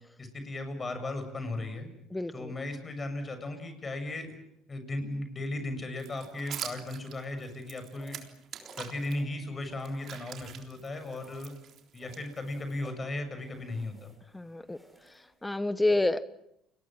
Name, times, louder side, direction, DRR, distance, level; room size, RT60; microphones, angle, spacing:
voice 1, 0.2-1.9 2.3-4.3 4.7-8.2 8.8-11.5 11.9-14.1, left 2 dB, 30° left, 8 dB, 7.0 m, -36 dB
voice 2, 2.1-2.5 14.3-14.8 15.4-16.2, left 2 dB, 10° left, 14 dB, 1.0 m, -28 dB
sound 1, 6.0-9.2 9.6-12.7, right 9 dB, 60° right, 3.7 m, -44 dB
sound 2, 8.0-10.6 10.9-11.6 12.0-15.5, right 1 dB, 5° right, 7.0 m, -56 dB
29.5 x 21.0 x 7.6 m, 0.79 s
supercardioid pair, 95°, 0 cm